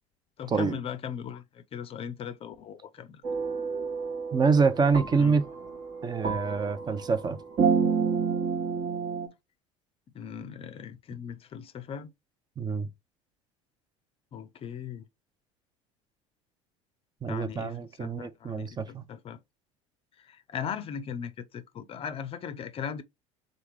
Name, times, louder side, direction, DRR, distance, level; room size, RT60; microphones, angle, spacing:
voice 1, 0.4-3.2 5.2-5.4 10.1-12.1 14.3-15.0 17.3-19.4 20.2-23.0, left 7 dB, 35° left, 0.5 m, -38 dB
sound 1, 3.2-9.3, right 6 dB, 45° right, 1.1 m, -29 dB
voice 2, 4.3-5.4 6.0-7.4 12.6-12.9 17.2-19.0, right 5 dB, 25° right, 0.6 m, -26 dB
3.8 x 3.5 x 3.3 m
figure-of-eight pair, 70°, 16 cm